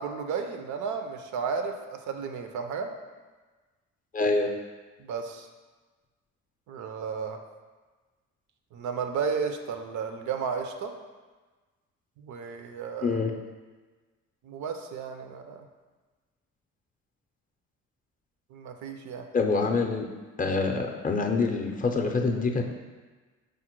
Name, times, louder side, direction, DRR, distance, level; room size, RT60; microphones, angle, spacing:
voice 1, 0.0-2.9 5.0-5.5 6.7-7.4 8.7-10.9 12.2-13.2 14.4-15.6 18.5-19.3, right 6 dB, 75° right, 5 dB, 0.5 m, -33 dB
voice 2, 4.1-4.5 13.0-13.3 19.3-20.1 20.4-22.6, left 4 dB, 30° left, 3 dB, 0.5 m, -26 dB
4.9 x 2.1 x 4.4 m, 1.3 s
cardioid pair, 90°, 30 cm